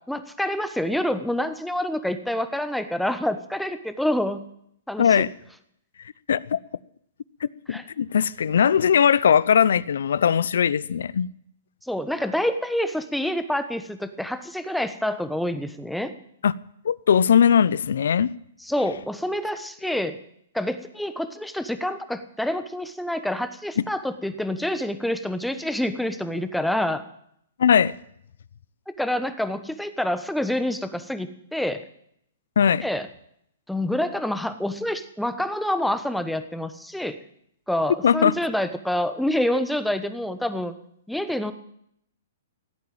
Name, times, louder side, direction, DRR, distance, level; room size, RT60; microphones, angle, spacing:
voice 1, 0.1-4.5 4.9-5.1 7.7-7.8 11.9-16.1 18.6-20.2 20.5-27.0 28.9-31.8 32.8-33.1 33.7-37.2 37.7-40.7 41.1-41.5, left 1 dB, ahead, 1.2 m, -27 dB
voice 2, 5.0-5.3 6.3-6.6 7.4-11.3 16.4-16.5 16.8-18.3 27.6-27.9 32.6-32.8 38.0-38.3, left 8 dB, 70° left, 0.6 m, -19 dB
16.5 x 8.6 x 8.8 m
hypercardioid pair, 130°, 0 cm